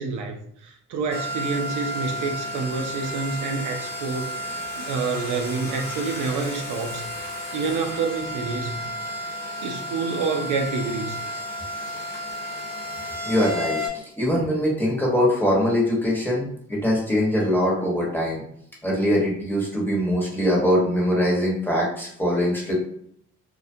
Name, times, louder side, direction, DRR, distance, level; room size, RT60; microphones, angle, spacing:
voice 1, 0.0-4.3 4.8-7.0 7.5-8.8 9.6-11.2, right 4 dB, 80° right, 0.5 m, -28 dB
sound 1, 1.1-13.9, equal, 60° left, 0.9 m, -32 dB
voice 2, 13.2-18.4 18.8-22.7, equal, 5° left, 1.0 m, -22 dB
2.3 x 2.1 x 2.6 m
cardioid pair, 90°, 30 cm